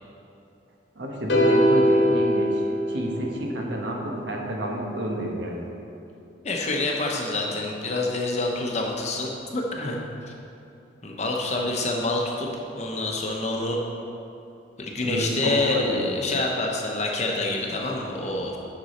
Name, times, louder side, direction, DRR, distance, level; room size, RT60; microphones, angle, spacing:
voice 1, 1.0-2.6 2.9-5.7 15.0-16.1, equal, 70° right, -1 dB, 1.1 m, -29 dB
sound 1, 1.3-3.6, equal, 60° left, 1.1 m, -21 dB
voice 2, 6.4-10.0 11.0-13.8 14.8-18.6, left 2 dB, 35° left, 0 dB, 0.8 m, -27 dB
8.1 x 6.1 x 4.3 m, 2.8 s
head